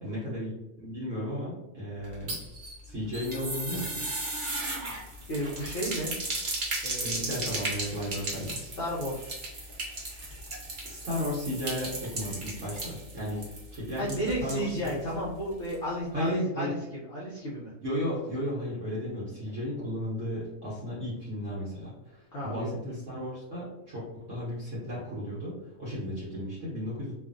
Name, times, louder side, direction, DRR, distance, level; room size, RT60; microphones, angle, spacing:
voice 1, 0.0-0.5 0.8-2.4 2.8-4.0 7.0-8.6 10.8-15.2 16.1-16.7 17.8-27.1, left 1 dB, 60° right, -8 dB, 1.1 m, -34 dB
sound 1, 2.0-15.0 15.3-15.4 15.7-15.8, right 2 dB, 45° right, 0.7 m, -36 dB
voice 2, 5.3-6.1 6.8-7.5 8.6-9.3 13.9-17.7 22.3-23.0, equal, 60° left, -6 dB, 0.6 m, -33 dB
2.6 x 2.4 x 2.4 m, 0.91 s
omnidirectional pair, 1.6 m